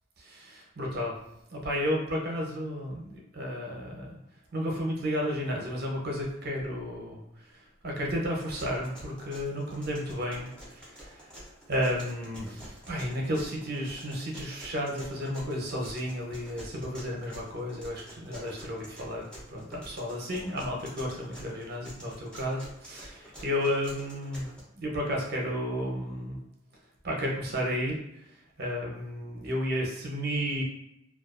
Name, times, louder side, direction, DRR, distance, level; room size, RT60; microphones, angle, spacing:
voice 1, 0.2-1.1 1.5-4.2 4.5-11.2 11.7-19.2 19.5-24.5 24.7-26.4 27.0-28.0 28.6-30.6, equal, 55° right, -2 dB, 0.7 m, -32 dB
sound 1, 8.6-24.6, equal, 5° left, 0.6 m, -48 dB
2.4 x 2.3 x 2.4 m, 0.86 s
head